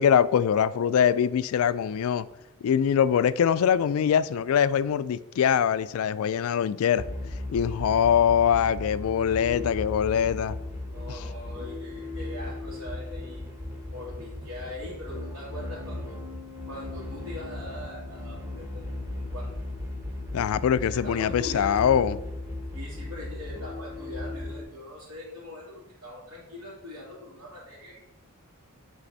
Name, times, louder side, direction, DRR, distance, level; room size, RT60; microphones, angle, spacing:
voice 1, 0.0-2.3 2.6-7.0 7.5-10.6 20.3-22.2, left 8 dB, 70° left, 0.3 m, -23 dB
sound 1, 7.0-24.6, left 2 dB, 10° right, 1.1 m, -36 dB
voice 2, 10.9-13.5 13.9-16.2 16.7-19.5 20.9-21.9 22.7-28.0, left 1 dB, 75° right, 2.5 m, -42 dB
9.1 x 3.4 x 4.0 m
head